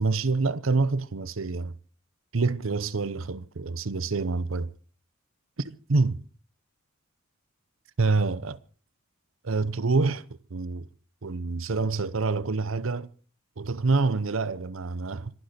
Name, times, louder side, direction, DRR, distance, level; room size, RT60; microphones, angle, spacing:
voice 1, 0.0-1.7 2.3-4.7 5.6-6.2 8.0-8.6 9.4-10.2 10.5-10.9 11.2-13.1 13.6-15.3, right 3 dB, 70° right, 0.8 m, -26 dB
25.5 x 11.5 x 4.3 m
head